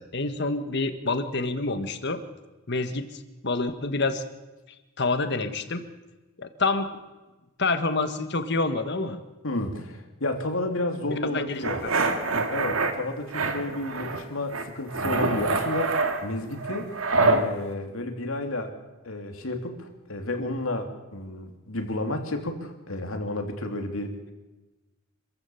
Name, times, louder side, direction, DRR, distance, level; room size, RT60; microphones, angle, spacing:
voice 1, 0.0-2.2 2.7-3.1 3.4-4.2 5.0-5.8 6.4-6.9 7.6-9.2 11.1-11.6, left 3 dB, 50° left, 9 dB, 1.6 m, -27 dB
voice 2, 9.4-11.8 12.5-17.0 17.2-18.7 19.0-24.3, left 1 dB, 70° left, 5 dB, 2.7 m, -31 dB
sound 1, 11.6-12.9 13.3-14.2 14.5-17.4, right 3 dB, 75° right, 2.0 m, -25 dB
26.0 x 15.0 x 7.1 m, 1.1 s
head